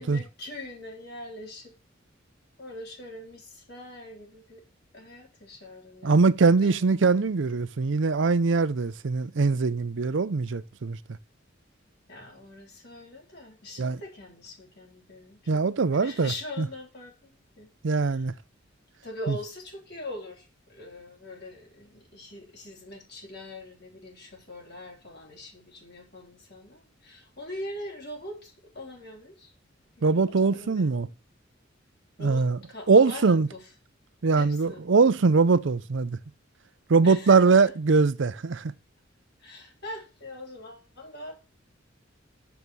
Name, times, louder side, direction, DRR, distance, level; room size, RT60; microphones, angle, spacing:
voice 1, 0.0-1.7 2.6-4.6 4.9-6.2 6.6-7.3 12.1-15.6 16.0-18.2 19.0-29.5 30.0-31.1 32.2-33.7 34.4-34.8 37.0-37.4 39.4-41.4, left 1 dB, 55° left, 3.7 m, -42 dB
voice 2, 6.0-11.0 13.8-14.0 15.5-16.3 16.6-16.7 17.8-18.3 19.3-19.4 30.0-31.1 32.2-32.6 32.9-33.5 34.2-36.2 36.9-38.7, right 4 dB, 70° right, 0.5 m, -22 dB
7.1 x 7.0 x 6.1 m
head